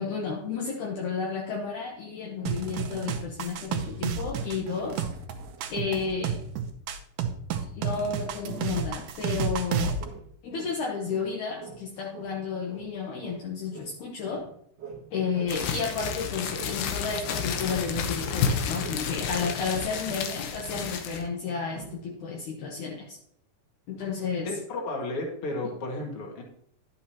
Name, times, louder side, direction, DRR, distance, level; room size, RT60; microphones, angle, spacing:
voice 1, 0.0-5.0 5.7-6.4 7.7-9.9 10.4-14.4 15.1-23.2 23.9-24.5, left 5 dB, 70° left, -1 dB, 2.4 m, -32 dB
sound 1, 2.5-10.0, right 7 dB, 85° right, 2.5 m, -31 dB
sound 2, 10.0-11.3 11.6-15.6 16.0-17.9 18.2-19.7 20.0-20.4 20.7-21.0 21.7-22.1, right 6 dB, 50° right, 1.4 m, -44 dB
sound 3, 15.5-21.3, left 7 dB, 85° left, 2.6 m, -31 dB
voice 2, 24.4-26.4, left 2 dB, 45° left, 0 dB, 2.5 m, -33 dB
11.0 x 8.5 x 2.9 m, 0.68 s
omnidirectional pair, 3.9 m